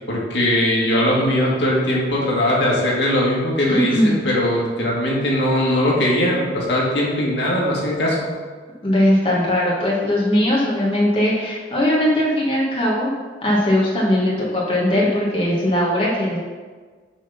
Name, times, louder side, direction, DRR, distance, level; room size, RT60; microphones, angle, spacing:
voice 1, 0.1-8.3, left 1 dB, 85° left, -4 dB, 1.8 m, -20 dB
voice 2, 3.7-4.1 8.8-13.1 13.4-16.4, left 1 dB, 30° left, -5 dB, 1.3 m, -19 dB
7.4 x 3.6 x 5.6 m, 1.5 s
head